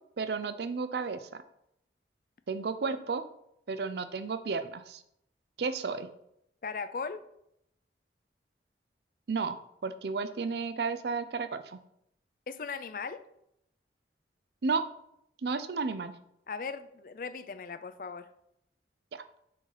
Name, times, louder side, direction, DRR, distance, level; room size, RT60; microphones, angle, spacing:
voice 1, 0.2-1.4 2.5-3.2 3.7-5.0 5.6-6.1 9.3-9.6 9.8-11.8 14.6-14.8 15.4-16.1 19.1-19.2, right 4 dB, 70° right, 11 dB, 0.5 m, -32 dB
voice 2, 6.6-7.2 12.5-13.2 16.5-18.3, left 5 dB, 50° left, 11 dB, 0.4 m, -38 dB
5.1 x 3.9 x 5.8 m, 0.76 s
head